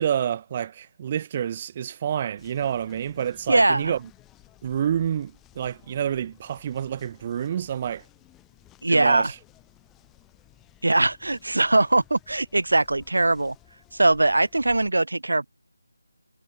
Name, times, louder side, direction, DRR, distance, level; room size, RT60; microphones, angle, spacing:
voice 1, 0.0-4.0 4.6-8.0 8.9-9.3, right 9 dB, 20° right, 0.5 m, -28 dB
sound 1, 2.4-14.9, left 15 dB, 5° left, 7.2 m, -56 dB
voice 2, 3.5-3.9 8.8-9.3 10.8-13.6 13.9-15.5, right 2 dB, 80° right, 0.5 m, -21 dB
figure-of-eight pair, 175°, 0 cm